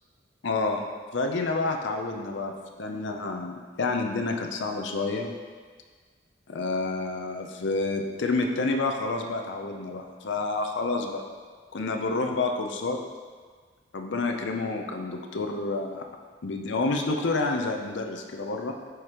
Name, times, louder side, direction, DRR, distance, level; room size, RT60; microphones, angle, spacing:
voice 1, 0.4-0.8 1.1-5.3 6.5-11.2 11.7-13.0 13.9-16.0 16.4-18.7, left 3 dB, 65° left, 3 dB, 0.6 m, -29 dB
7.9 x 5.0 x 3.0 m, 1.5 s
head